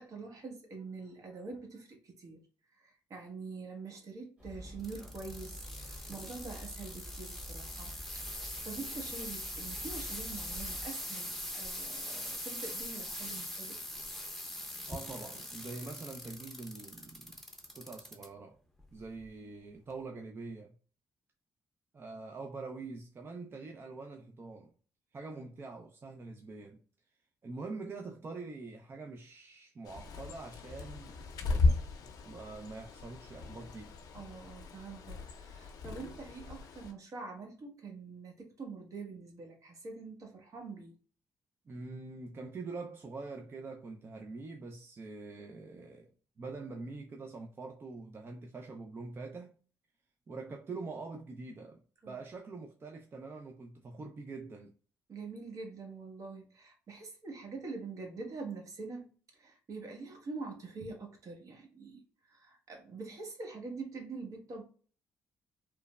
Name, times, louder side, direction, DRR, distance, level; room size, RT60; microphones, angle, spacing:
voice 1, 0.0-2.4 2.7-13.8 34.1-40.9 52.0-52.2 55.1-64.6, right 4 dB, 60° right, 1.0 m, -45 dB
sound 1, 4.4-10.9, equal, 20° right, 1.2 m, -48 dB
sound 2, 4.8-18.3 18.8-19.2 19.9-20.0, left 1 dB, 5° left, 0.7 m, -42 dB
voice 2, 14.9-17.4 17.7-18.6 18.9-20.7 21.9-24.7 25.1-26.8 27.4-31.2 31.4-31.9 32.2-34.0 41.7-46.1 46.4-49.6 50.3-54.7, right 3 dB, 35° right, 0.4 m, -44 dB
Bird, 29.8-36.9, left 3 dB, 75° left, 0.5 m, -35 dB
3.1 x 2.0 x 2.2 m
cardioid pair, 70°, 7 cm